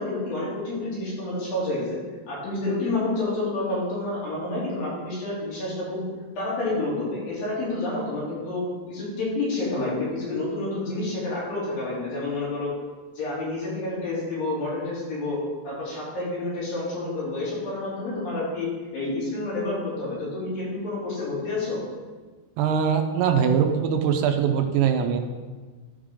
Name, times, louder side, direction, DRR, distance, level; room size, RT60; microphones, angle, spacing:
voice 1, 0.0-2.0 2.3-6.0 6.4-12.7 13.1-15.4 15.6-18.7 18.9-21.8, left 2 dB, 60° left, -8 dB, 4.7 m, -29 dB
voice 2, 22.6-25.2, right 7 dB, 90° right, 5 dB, 2.7 m, -22 dB
13.0 x 5.2 x 3.7 m, 1.3 s
omnidirectional pair, 4.8 m